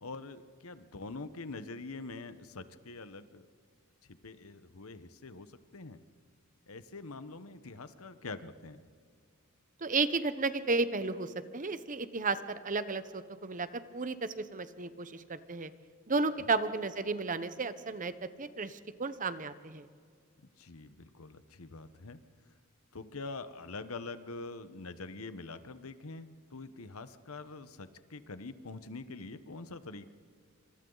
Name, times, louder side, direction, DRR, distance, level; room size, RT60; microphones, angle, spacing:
voice 1, 0.0-3.5 4.1-6.0 6.7-8.8 16.4-16.5 20.4-22.2 22.5-22.6 22.9-30.1, left 3 dB, 90° left, 12 dB, 1.1 m, -45 dB
voice 2, 9.8-13.7 13.9-15.7 16.1-18.1 18.4-19.9, right 3 dB, 40° right, 12 dB, 1.0 m, -33 dB
28.0 x 26.0 x 4.0 m, 2.1 s
head